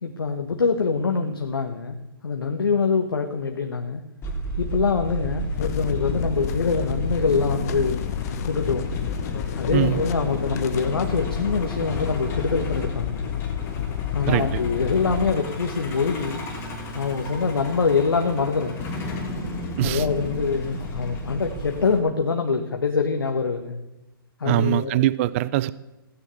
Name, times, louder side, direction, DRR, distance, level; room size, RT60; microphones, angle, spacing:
voice 1, 0.0-2.0 2.2-4.0 4.6-8.1 8.5-8.9 9.5-13.2 14.1-16.4 16.9-18.8 19.8-23.8 24.4-25.1, left 5 dB, 80° left, 1.5 m, -24 dB
Truck, 4.2-22.0, equal, 20° left, 3.1 m, -34 dB
sound 1, 5.6-15.3, left 9 dB, 45° left, 1.1 m, -30 dB
voice 2, 9.7-10.0 14.3-14.6 19.8-20.1 24.4-25.7, right 15 dB, 35° right, 0.5 m, -22 dB
16.0 x 9.4 x 7.0 m
hypercardioid pair, 135°, 12 cm